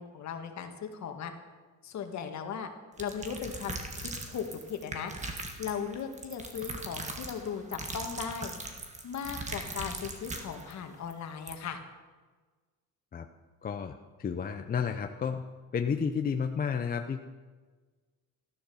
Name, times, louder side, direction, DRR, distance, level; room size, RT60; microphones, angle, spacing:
voice 1, 0.0-1.3 1.8-2.7 3.0-5.1 5.6-8.5 9.0-11.8, left 7 dB, 55° left, 5 dB, 2.0 m, -37 dB
sound 1, 3.0-10.7 11.1-11.2 11.5-11.6, right 2 dB, 20° right, 1.6 m, -40 dB
voice 2, 13.6-13.9 14.2-15.4 15.7-17.2, left 6 dB, 25° left, 6 dB, 0.6 m, -31 dB
14.5 x 13.0 x 7.1 m, 1.4 s
cardioid pair, 160°, 34 cm